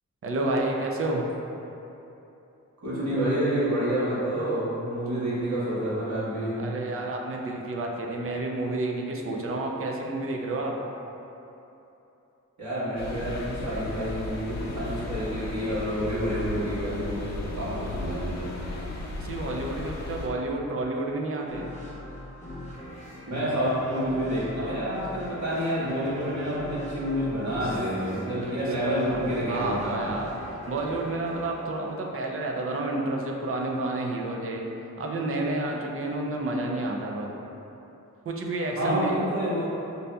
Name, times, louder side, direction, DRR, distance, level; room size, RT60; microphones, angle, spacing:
voice 1, 0.2-1.3 6.6-10.8 19.2-21.7 28.4-28.5 28.8-29.2 29.5-34.6 35.0-37.4 38.3-39.2, right 2 dB, 45° right, 0 dB, 0.4 m, -30 dB
voice 2, 2.8-6.6 12.6-18.5 23.3-30.0 38.7-39.7, equal, 65° right, -11 dB, 1.3 m, -28 dB
sound 1, 13.0-20.3, left 3 dB, 60° left, 0.5 m, -35 dB
sound 2, 21.5-32.7, left 1 dB, 20° left, 0.7 m, -41 dB
5.3 x 2.6 x 2.2 m, 3.0 s
wide cardioid pair, 155°, 31 cm